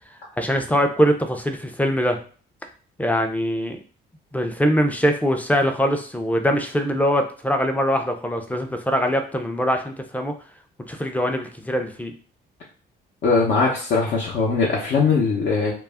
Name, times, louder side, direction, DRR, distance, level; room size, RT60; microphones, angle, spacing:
voice 1, 0.4-2.2 3.0-3.8 4.3-10.3 10.9-12.1, equal, 10° left, 5 dB, 0.4 m, -22 dB
voice 2, 13.2-15.7, left 4 dB, 65° left, -4 dB, 0.6 m, -20 dB
2.3 x 2.0 x 3.4 m, 0.41 s
cardioid pair, 90°, 20 cm